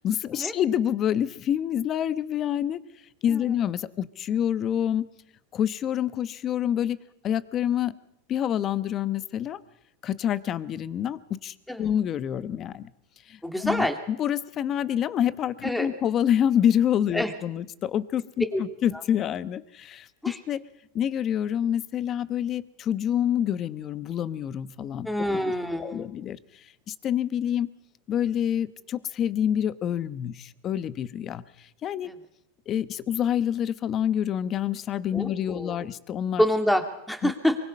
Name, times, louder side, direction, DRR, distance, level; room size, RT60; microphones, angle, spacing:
voice 1, 0.0-2.8 3.2-5.0 5.5-7.0 7.2-7.9 8.3-9.6 10.0-12.9 13.3-20.6 20.9-25.1 25.4-25.5 25.8-26.4 26.9-27.7 28.1-31.4 31.8-32.1 32.7-36.4 37.2-37.3, left 10 dB, 35° left, 15 dB, 1.1 m, -27 dB
voice 2, 13.4-14.0 15.6-15.9 17.1-17.3 18.5-18.6 20.2-20.4 25.0-26.1 32.0-32.1 35.1-35.8 36.4-37.6, equal, 5° left, 6 dB, 2.7 m, -26 dB
24.5 x 24.0 x 5.5 m, 0.82 s
supercardioid pair, 135°, 0 cm